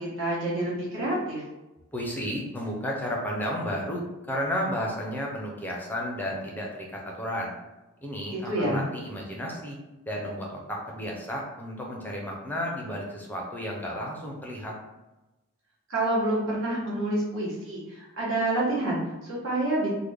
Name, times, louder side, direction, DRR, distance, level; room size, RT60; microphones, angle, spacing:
voice 1, 0.0-1.4 8.3-8.9 15.9-19.9, right 1 dB, 60° right, -6 dB, 1.2 m, -28 dB
voice 2, 1.9-7.6 8.0-9.8 10.1-14.8, equal, 10° left, -2 dB, 0.5 m, -32 dB
3.2 x 2.1 x 3.4 m, 1.1 s
head